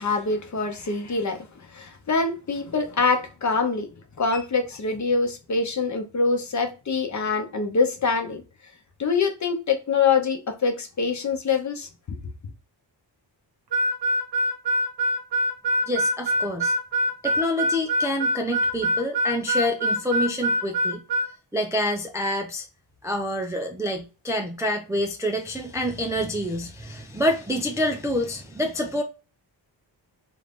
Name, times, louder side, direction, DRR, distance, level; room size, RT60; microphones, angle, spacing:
voice 1, 0.0-3.9 4.2-8.4 9.0-11.9, left 4 dB, 40° left, 0.8 m, -24 dB
Harmonica, 13.7-21.3, equal, 60° right, 0.9 m, -24 dB
voice 2, 15.9-16.7 17.2-21.0 21.5-22.7 23.0-29.0, left 1 dB, 10° right, 0.3 m, -27 dB
3.2 x 2.5 x 3.4 m
wide cardioid pair, 170°, 43 cm